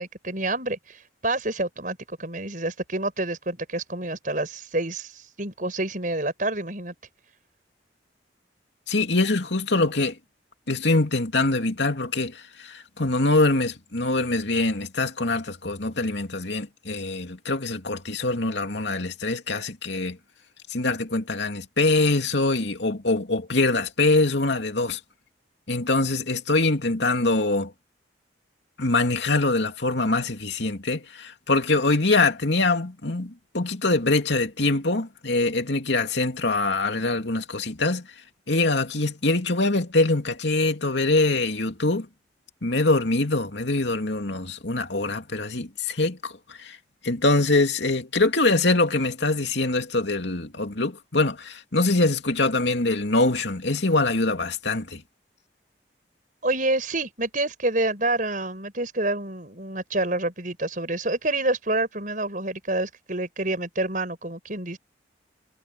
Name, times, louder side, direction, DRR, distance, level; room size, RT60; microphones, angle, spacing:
voice 1, 0.0-7.0 56.4-64.8, right 2 dB, 45° right, 5.8 m, -28 dB
voice 2, 8.9-10.2 10.7-20.2 20.7-25.0 25.7-27.7 28.8-38.1 38.5-42.1 42.6-46.8 47.0-55.0, left 2 dB, 70° left, 2.7 m, -24 dB
head